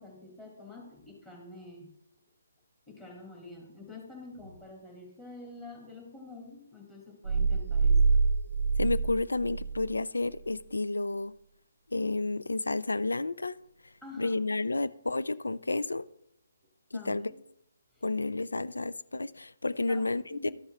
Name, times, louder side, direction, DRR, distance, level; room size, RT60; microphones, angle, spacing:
voice 1, 0.0-1.9 2.9-8.0 14.0-14.4 16.9-17.4 17.9-18.0 19.9-20.5, left 2 dB, 10° left, 2.5 m, -47 dB
sound 1, 7.2-10.0, right 4 dB, 65° right, 0.5 m, -26 dB
voice 2, 8.8-11.3 11.9-13.6 14.2-16.0 16.9-17.3 18.0-20.5, left 2 dB, 85° left, 0.4 m, -31 dB
12.5 x 5.5 x 3.4 m
figure-of-eight pair, 150°, 0 cm